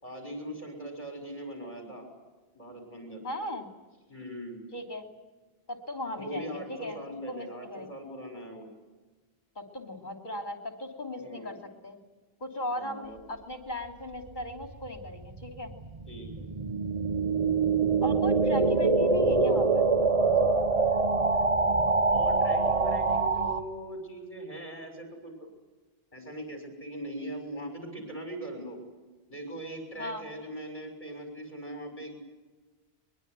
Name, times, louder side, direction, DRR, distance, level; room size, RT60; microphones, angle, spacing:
voice 1, 0.0-2.1 2.5-3.2 4.1-4.6 6.2-8.7 11.2-11.6 12.7-13.2 16.1-16.5 22.1-25.5 26.1-28.8 29.3-32.2, right 1 dB, 35° left, 4 dB, 6.5 m, -40 dB
voice 2, 3.2-3.7 4.7-5.0 5.7-7.9 9.6-11.6 11.8-12.0 12.4-15.7 18.0-19.9 30.0-30.3, left 1 dB, 50° left, 5 dB, 3.5 m, -37 dB
sound 1, 14.3-23.6, right 3 dB, 35° right, 1.3 m, -25 dB
22.5 x 22.5 x 9.8 m, 1.3 s
omnidirectional pair, 1.0 m